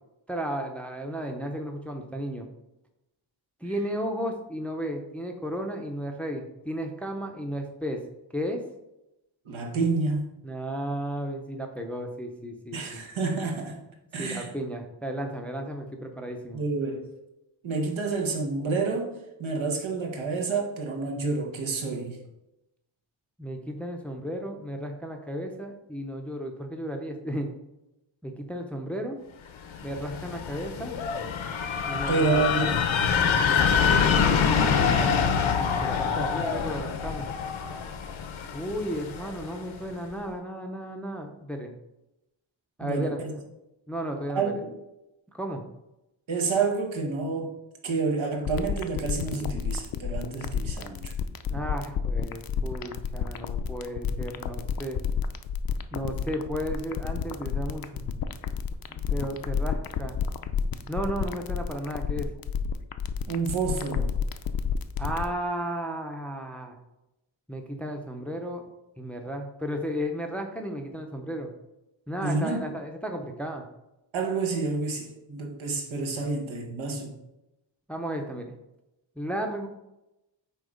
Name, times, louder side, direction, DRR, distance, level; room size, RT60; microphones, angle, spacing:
voice 1, 0.3-2.5 3.6-8.0 8.3-8.6 10.4-13.0 14.2-16.6 23.4-27.5 28.2-29.2 29.8-31.0 31.9-32.5 33.5-37.3 38.5-41.7 42.8-43.4 43.9-44.5 45.3-45.6 51.5-55.0 55.9-58.2 58.9-60.2 60.9-62.3 65.0-66.8 67.5-68.7 69.0-71.5 72.1-73.6 77.9-78.5 79.2-79.7, equal, 5° left, 4 dB, 0.5 m, -34 dB
voice 2, 9.4-10.2 12.7-13.8 14.1-14.5 16.5-17.0 17.6-19.1 19.4-22.2 32.1-32.8 39.1-39.2 42.8-43.3 44.3-44.8 46.3-47.5 47.8-51.1 63.3-64.1 72.2-72.6 74.1-77.1, right 4 dB, 85° right, 1 dB, 1.4 m, -29 dB
sound 1, 29.7-39.5, left 6 dB, 90° left, 0.9 m, -25 dB
sound 2, 48.4-65.3, left 7 dB, 50° left, 0.5 m, -30 dB
7.8 x 2.9 x 5.0 m, 0.92 s
wide cardioid pair, 165°, 46 cm